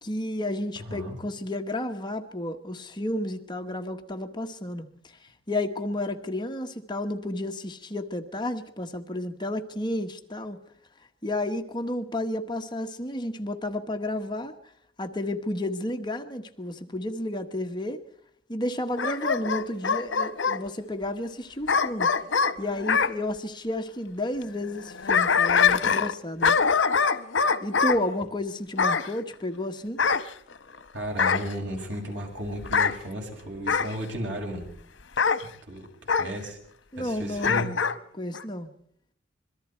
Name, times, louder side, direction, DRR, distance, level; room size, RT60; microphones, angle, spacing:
voice 1, 0.0-4.8 5.5-10.6 11.2-14.5 15.0-18.0 18.5-22.1 22.6-26.6 27.6-30.0 36.9-37.8 38.1-38.7, left 1 dB, 25° left, 5 dB, 1.3 m, -31 dB
voice 2, 0.9-1.2 30.9-34.6 35.7-35.8 36.1-36.6 37.0-37.6, equal, 75° right, 1 dB, 7.1 m, -34 dB
Bark / Growling, 19.0-20.6 21.7-23.1 24.8-26.1 26.4-28.0 28.8-29.1 30.0-30.8 31.2-31.5 32.6-33.0 33.7-33.9 35.2-35.4 36.1-36.3 37.4-38.0 38.3-38.4, left 5 dB, 85° left, 0.9 m, -23 dB
26.0 x 23.0 x 4.5 m, 0.67 s
head